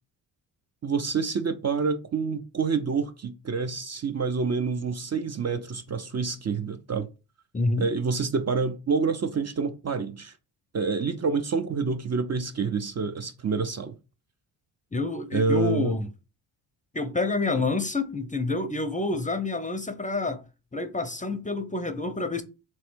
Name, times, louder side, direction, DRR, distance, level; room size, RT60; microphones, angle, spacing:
voice 1, 0.8-7.1 7.8-10.3 10.7-13.9 15.3-16.0, right 5 dB, 35° right, 0.6 m, -27 dB
voice 2, 7.5-7.9 14.9-16.1 16.9-20.4 20.7-22.4, left 3 dB, 15° left, 0.6 m, -28 dB
3.4 x 3.1 x 4.5 m
supercardioid pair, 60°, 49 cm